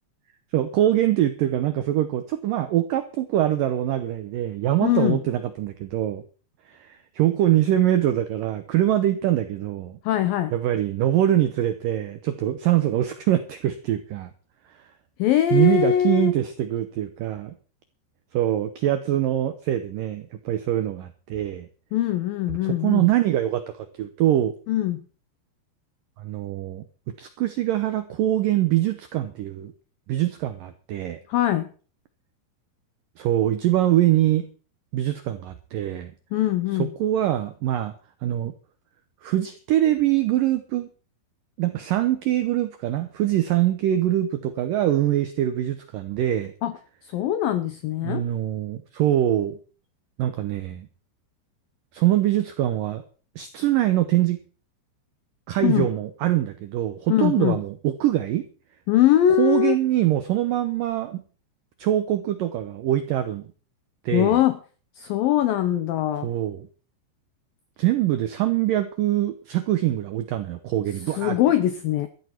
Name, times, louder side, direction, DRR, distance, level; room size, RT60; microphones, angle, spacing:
voice 1, 0.5-6.2 6.7-10.0 10.5-14.3 15.5-17.6 18.3-21.7 22.6-24.5 26.2-26.8 27.2-29.7 30.1-31.2 33.2-34.5 34.9-36.1 36.8-37.9 38.2-38.5 39.2-40.9 41.6-46.5 48.0-49.6 50.2-50.9 51.9-53.0 53.4-54.4 55.5-58.5 59.4-61.2 61.8-63.5 64.0-64.4 66.2-66.7 67.8-71.4, right 12 dB, 85° right, 9 dB, 1.9 m, -23 dB
voice 2, 4.8-5.2 10.1-10.5 15.2-16.3 21.9-23.0 24.7-25.0 31.3-31.7 36.3-36.9 46.6-46.7 47.0-48.3 55.6-55.9 57.1-57.6 58.9-59.8 64.1-64.6 65.0-66.3 71.1-72.1, left 11 dB, 85° left, 11 dB, 2.0 m, -22 dB
14.0 x 13.0 x 4.6 m, 0.40 s
omnidirectional pair, 5.2 m